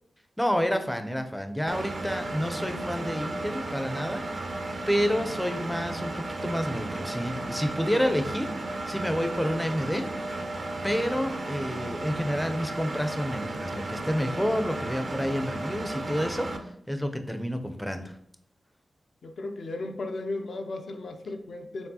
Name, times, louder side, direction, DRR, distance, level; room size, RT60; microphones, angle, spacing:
voice 1, 0.4-4.2 4.9-10.1 10.8-16.5 16.9-18.1, equal, 5° left, 7 dB, 0.4 m, -29 dB
Engine, 1.7-16.6, right 2 dB, 55° right, 0.5 m, -34 dB
voice 2, 19.2-21.9, left 2 dB, 70° left, 5 dB, 0.5 m, -35 dB
4.5 x 3.3 x 2.8 m, 0.75 s
cardioid pair, 80°, 0 cm